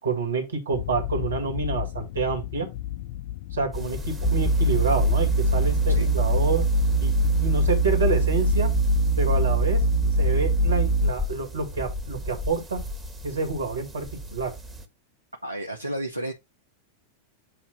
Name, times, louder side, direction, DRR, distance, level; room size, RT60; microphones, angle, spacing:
voice 1, 0.0-2.7 3.5-6.6 7.0-8.7 9.2-9.8 10.2-12.8 13.2-14.5, right 4 dB, 70° right, 2.2 m, -28 dB
sound 1, 0.7-6.4, left 13 dB, 50° left, 0.3 m, -35 dB
sound 2, 3.7-14.9, equal, 10° right, 1.5 m, -38 dB
sound 3, 4.2-11.1, right 1 dB, 25° left, 1.6 m, -22 dB
voice 2, 15.4-16.3, right 1 dB, 90° right, 0.8 m, -31 dB
7.9 x 2.7 x 5.8 m
figure-of-eight pair, 90°, 0 cm